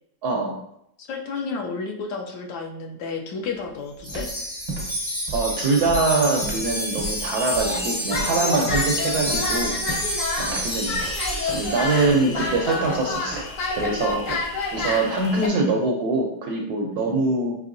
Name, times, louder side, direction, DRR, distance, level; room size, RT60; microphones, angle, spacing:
voice 1, 0.2-0.5 5.3-9.7 10.4-11.0 11.5-13.4 13.7-14.2 14.7-17.5, right 3 dB, 70° right, 0 dB, 0.9 m, -23 dB
voice 2, 1.0-4.3 12.0-12.4 17.1-17.2, left 4 dB, 75° left, 4 dB, 1.3 m, -32 dB
sound 1, 3.5-3.7 3.9-15.4, right 2 dB, 35° right, 0.5 m, -36 dB
Wind chime, 4.0-12.2, equal, 35° left, 0.4 m, -29 dB
sound 2, 7.6-15.5, left 3 dB, 55° left, 0.9 m, -29 dB
5.4 x 3.2 x 2.6 m, 0.75 s
omnidirectional pair, 2.2 m